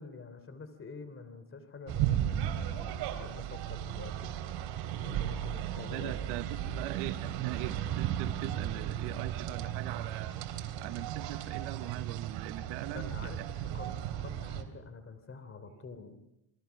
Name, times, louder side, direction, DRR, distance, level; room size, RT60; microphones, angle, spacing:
voice 1, 0.0-4.3 5.0-6.3 12.9-13.4 13.7-16.1, left 4 dB, 25° left, 10 dB, 3.2 m, -47 dB
sound 1, 1.9-14.6, right 11 dB, 65° right, 3.3 m, -35 dB
voice 2, 5.9-10.3 10.8-13.5, right 16 dB, 85° right, 9 dB, 1.2 m, -41 dB
28.0 x 23.0 x 5.9 m, 0.85 s
cardioid pair, 110°, 47 cm